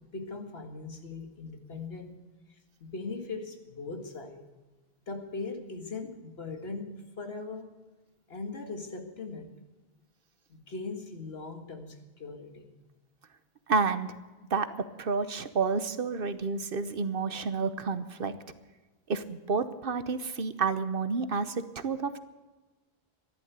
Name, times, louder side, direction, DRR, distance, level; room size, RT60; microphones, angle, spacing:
voice 1, 0.0-2.2 2.5-4.4 5.1-7.8 8.3-9.6 10.5-12.8, left 3 dB, 70° left, 5 dB, 2.1 m, -40 dB
voice 2, 13.7-14.1 14.5-14.7 15.0-18.4 19.1-22.2, right 4 dB, 60° right, 12 dB, 1.1 m, -30 dB
14.0 x 11.5 x 8.1 m, 1.2 s
omnidirectional pair, 1.1 m